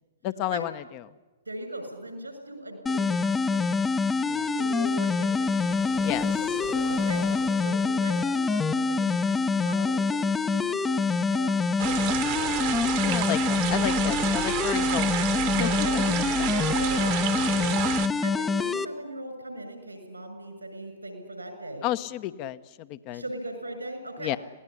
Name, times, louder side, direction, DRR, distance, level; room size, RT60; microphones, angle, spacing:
voice 1, 0.2-0.8 4.3-4.5 6.0-6.6 13.0-16.5 21.8-23.2 24.2-24.4, left 13 dB, 35° left, 13 dB, 1.0 m, -32 dB
voice 2, 1.4-3.9 4.5-6.0 6.9-12.7 13.6-13.9 15.5-21.9 23.1-24.4, right 1 dB, 90° right, 7 dB, 6.7 m, -39 dB
sound 1, 2.9-18.9, left 4 dB, 15° left, 0.8 m, -25 dB
sound 2, 5.0-9.1, left 8 dB, 60° left, 1.6 m, -43 dB
sound 3, 11.8-18.1, right 16 dB, 45° right, 1.4 m, -30 dB
26.0 x 18.5 x 9.8 m, 1.3 s
figure-of-eight pair, 115°, 0 cm